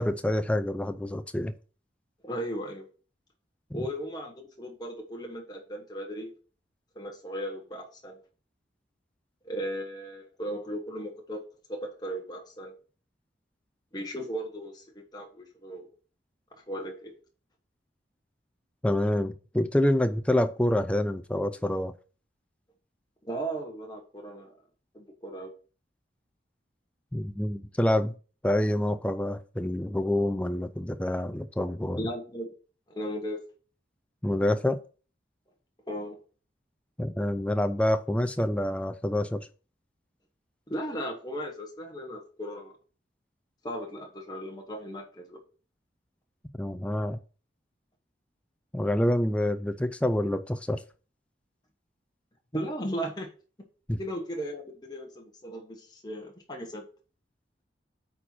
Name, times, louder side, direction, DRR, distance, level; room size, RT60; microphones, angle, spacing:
voice 1, 0.0-1.5 18.8-21.9 27.1-28.1 28.4-32.1 34.2-34.8 37.0-39.5 46.6-47.2 48.7-50.8 53.9-54.0, left 1 dB, 5° left, 0.4 m, -27 dB
voice 2, 2.2-2.9 3.7-6.3 6.9-8.2 9.4-12.7 13.9-15.9 16.5-17.1 23.2-24.5 24.9-25.5 32.0-32.5 32.9-33.4 35.9-36.2 40.7-42.8 43.6-45.4 52.5-53.3 54.0-56.8, equal, 20° left, 1.1 m, -36 dB
8.7 x 4.3 x 4.3 m
head